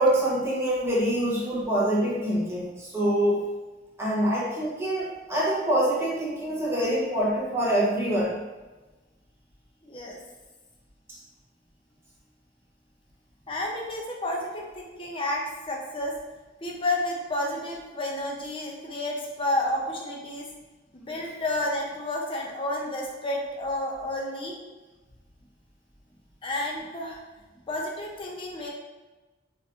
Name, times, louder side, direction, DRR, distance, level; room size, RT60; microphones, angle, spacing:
voice 1, 0.0-3.5 4.0-8.4, right 1 dB, 15° right, -7 dB, 0.9 m, -25 dB
voice 2, 9.8-10.2 13.5-16.1 16.6-20.5 20.9-24.5 26.4-27.2 27.7-28.7, left 1 dB, 30° left, -1 dB, 0.5 m, -31 dB
4.1 x 2.5 x 2.4 m, 1.2 s
head